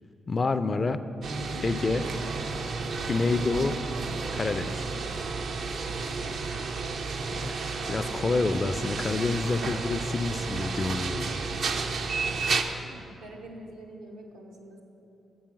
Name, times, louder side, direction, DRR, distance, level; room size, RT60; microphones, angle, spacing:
voice 1, 0.3-1.0 1.6-2.0 3.1-3.8 4.3-4.8 7.3-11.6, left 3 dB, 40° left, 12 dB, 0.3 m, -28 dB
sound 1, 1.2-12.6, right 4 dB, 65° right, 0.4 m, -32 dB
voice 2, 6.0-6.6 12.7-14.8, right 1 dB, 90° right, -2 dB, 0.8 m, -47 dB
7.2 x 4.7 x 5.9 m, 2.8 s
hypercardioid pair, 40°, 0 cm